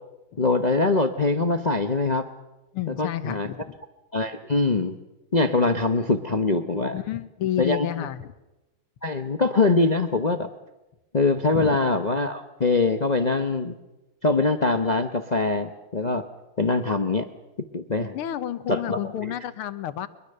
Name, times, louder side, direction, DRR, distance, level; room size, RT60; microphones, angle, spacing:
voice 1, 0.4-2.3 2.9-3.5 4.1-5.0 5.3-7.0 7.6-8.1 9.0-10.5 11.1-13.8 14.2-16.2 16.6-17.3 17.7-18.2 18.7-19.3, left 3 dB, 60° left, 8 dB, 0.4 m, -23 dB
voice 2, 2.7-3.8 6.9-8.3 11.5-11.8 18.1-20.1, left 11 dB, 85° left, 13 dB, 1.9 m, -30 dB
23.5 x 22.0 x 6.7 m, 0.99 s
omnidirectional pair, 2.4 m